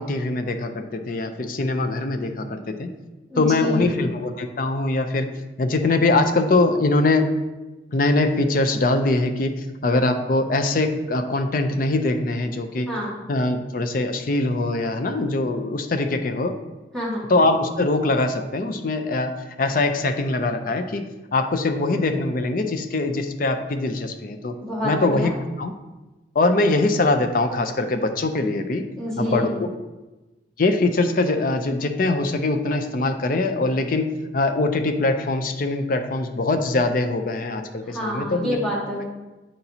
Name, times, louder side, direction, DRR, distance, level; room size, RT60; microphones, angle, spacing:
voice 1, 0.0-2.9 3.4-5.3 5.6-7.3 7.9-9.5 9.8-12.9 13.3-16.6 17.3-21.0 21.3-24.5 24.8-25.3 25.6-25.7 26.4-28.9 29.2-29.7 30.6-38.6, left 2 dB, 45° left, 7 dB, 0.5 m, -22 dB
voice 2, 3.3-3.9 12.9-13.2 16.9-17.2 24.6-25.3 28.9-29.6 37.8-39.1, equal, 5° left, -9 dB, 1.9 m, -27 dB
8.8 x 4.0 x 2.9 m, 1.1 s
head